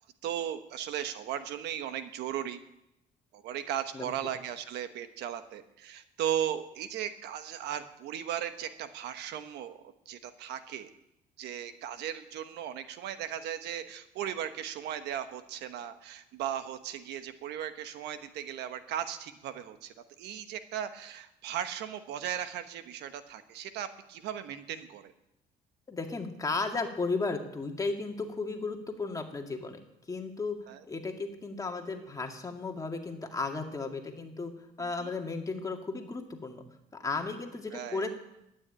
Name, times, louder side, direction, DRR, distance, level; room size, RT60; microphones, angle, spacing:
voice 1, 0.2-2.6 3.3-9.8 10.1-10.9 11.4-25.1 30.7-30.8 35.0-35.1 37.7-38.1, right 10 dB, 80° right, 10 dB, 1.1 m, -37 dB
voice 2, 25.9-29.8 30.1-30.6 30.8-36.6 37.0-38.1, left 3 dB, 20° left, 3 dB, 2.2 m, -34 dB
12.0 x 9.7 x 8.7 m, 0.84 s
cardioid pair, 110°, 17 cm